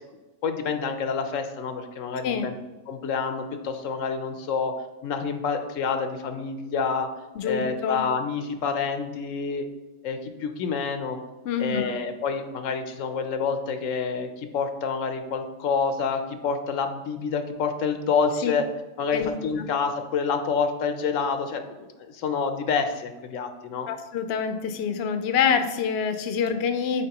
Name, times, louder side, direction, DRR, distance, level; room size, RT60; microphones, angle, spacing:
voice 1, 0.4-2.5 2.9-4.7 5.0-7.1 7.4-9.7 10.0-11.2 11.6-18.7 19.0-23.9, left 5 dB, 85° left, 7 dB, 1.0 m, -28 dB
voice 2, 7.4-8.0 11.4-11.9 18.4-18.6 19.1-19.4 23.9-27.1, left 7 dB, 65° left, 8 dB, 0.8 m, -26 dB
8.5 x 4.1 x 2.9 m, 1.1 s
omnidirectional pair, 1.3 m